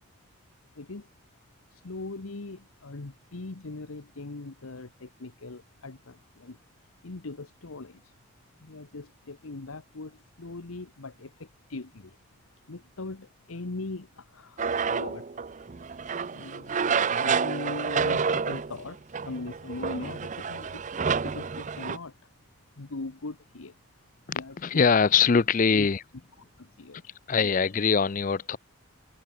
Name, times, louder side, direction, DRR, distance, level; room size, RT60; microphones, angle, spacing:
voice 1, 0.8-1.1 1.7-6.6 7.0-8.0 8.6-12.1 12.7-15.2 16.3-19.0 19.2-20.8 21.2-22.1 22.8-23.7 24.3-24.9 25.7-25.9 26.6-27.0, left 3 dB, 80° left, 1.1 m, -40 dB
sound 1, 14.6-22.0, right 5 dB, 35° right, 0.5 m, -29 dB
voice 2, 24.3-26.0 27.3-28.6, left 6 dB, 40° left, 0.4 m, -23 dB
head